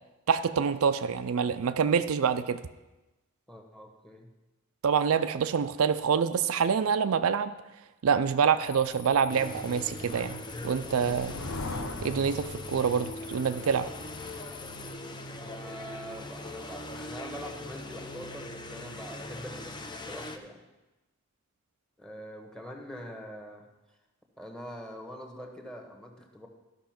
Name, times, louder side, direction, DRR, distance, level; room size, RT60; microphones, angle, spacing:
voice 1, 0.3-2.6 4.8-7.5 8.0-11.4 12.0-13.9, right 6 dB, 75° right, 11 dB, 0.4 m, -26 dB
voice 2, 3.5-4.3 15.4-20.6 22.0-23.7 24.4-26.5, equal, 5° left, 3 dB, 1.2 m, -44 dB
sound 1, 8.6-14.9, left 3 dB, 75° left, 1.0 m, -41 dB
sound 2, 9.3-20.4, left 1 dB, 20° left, 0.6 m, -41 dB
12.5 x 5.6 x 5.9 m, 1.1 s
head